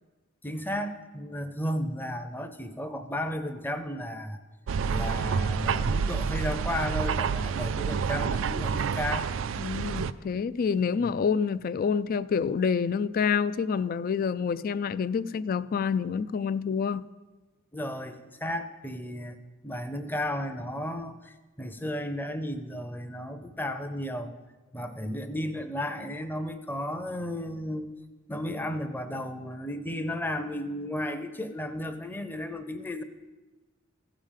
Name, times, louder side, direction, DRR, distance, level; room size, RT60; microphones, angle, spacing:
voice 1, 0.4-4.4 4.9-9.3 11.0-11.1 17.7-18.1 18.4-19.4 19.6-24.3 24.7-27.9 28.3-33.0, left 1 dB, 10° left, 9 dB, 0.6 m, -34 dB
sound 1, 4.7-10.1, right 6 dB, 80° right, 0.4 m, -28 dB
voice 2, 9.6-17.1, left 6 dB, 45° left, 16 dB, 0.3 m, -27 dB
15.0 x 5.0 x 7.4 m, 1.2 s
head